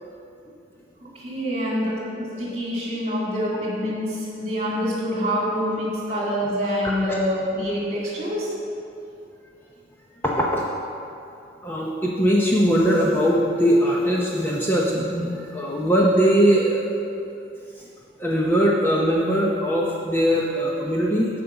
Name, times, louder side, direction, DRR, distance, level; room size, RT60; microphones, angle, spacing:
voice 1, 1.1-8.6, equal, 35° right, -5 dB, 2.2 m, -26 dB
voice 2, 10.2-10.6 11.6-17.3 18.2-21.3, equal, 10° left, -4 dB, 0.7 m, -21 dB
8.3 x 5.1 x 7.0 m, 2.6 s
head